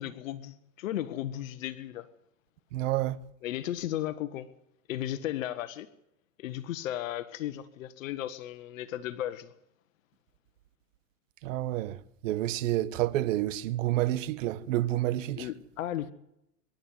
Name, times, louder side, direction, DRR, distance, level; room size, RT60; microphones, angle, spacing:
voice 1, 0.0-2.1 3.4-4.5 4.9-5.9 6.4-9.5 15.4-16.1, left 12 dB, 80° left, 1.5 m, -35 dB
voice 2, 2.7-3.2 11.4-12.0 12.2-15.5, right 15 dB, 70° right, 1.4 m, -29 dB
25.5 x 12.0 x 9.6 m
supercardioid pair, 115°, 39 cm